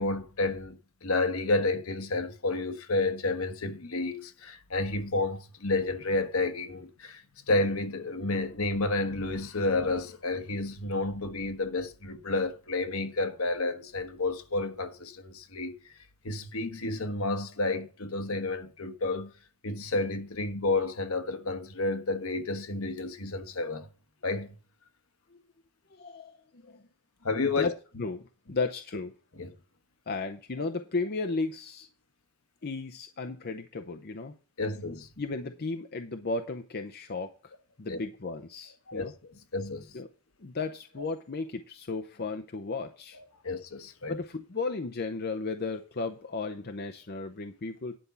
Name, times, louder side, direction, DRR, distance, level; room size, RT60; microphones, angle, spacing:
voice 1, 0.0-16.0 16.2-19.3 19.6-23.9 24.2-24.6 27.2-27.7 29.4-29.5 34.6-35.1 37.9-38.0 38.9-39.9 43.4-44.2, left 2 dB, 70° left, 1.3 m, -30 dB
voice 2, 25.9-26.8 27.6-29.1 30.1-31.9 32.6-34.3 35.2-37.5 37.8-39.1 39.9-40.1 40.4-43.2 44.1-48.0, left 3 dB, 45° left, 0.7 m, -34 dB
10.0 x 5.4 x 6.9 m
head